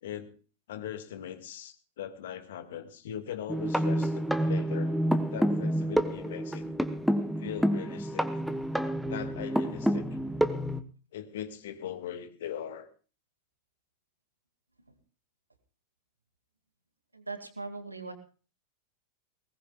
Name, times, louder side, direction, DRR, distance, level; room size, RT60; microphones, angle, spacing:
voice 1, 0.0-0.3 0.7-4.9 5.3-6.9 7.4-8.3 9.1-10.1 11.1-12.9, left 10 dB, 60° left, 10 dB, 1.6 m, -40 dB
sound 1, 3.5-10.8, equal, ahead, 1.0 m, -28 dB
voice 2, 17.1-18.1, right 3 dB, 85° right, 7 dB, 2.2 m, -39 dB
21.0 x 18.5 x 2.3 m, 0.37 s
figure-of-eight pair, 90°, 0 cm